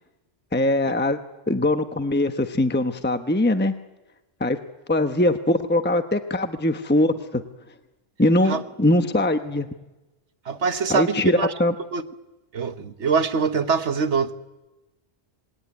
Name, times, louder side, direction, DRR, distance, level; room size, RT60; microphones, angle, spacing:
voice 1, 0.5-1.2 1.5-3.7 4.4-4.6 4.9-7.4 8.2-9.7 10.9-11.7, left 1 dB, 10° left, 8 dB, 1.0 m, -21 dB
voice 2, 10.5-11.5 11.9-12.0 12.5-14.3, right 5 dB, 85° right, 10 dB, 1.5 m, -23 dB
26.5 x 21.0 x 9.6 m, 1.1 s
omnidirectional pair, 1.1 m